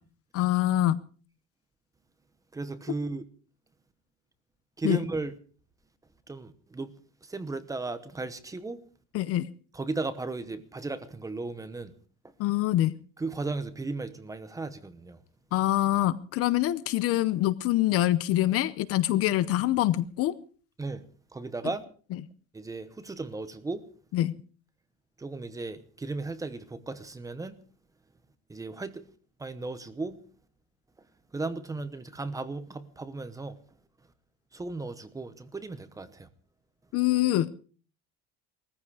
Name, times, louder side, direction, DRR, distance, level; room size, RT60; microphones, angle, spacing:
voice 1, 0.3-1.0 4.8-5.0 9.1-9.5 12.4-12.9 15.5-20.3 24.1-24.4 36.9-37.5, left 14 dB, 40° left, 0.7 m, -25 dB
voice 2, 2.5-3.2 4.8-5.3 6.3-6.9 7.3-8.8 9.7-11.9 13.2-15.2 20.8-21.0 21.3-21.8 22.5-23.8 25.2-27.6 28.5-29.0 29.4-30.2 31.3-33.6 34.5-36.3, right 3 dB, 10° right, 1.0 m, -35 dB
19.5 x 14.5 x 4.9 m
cardioid pair, 165°, 35 cm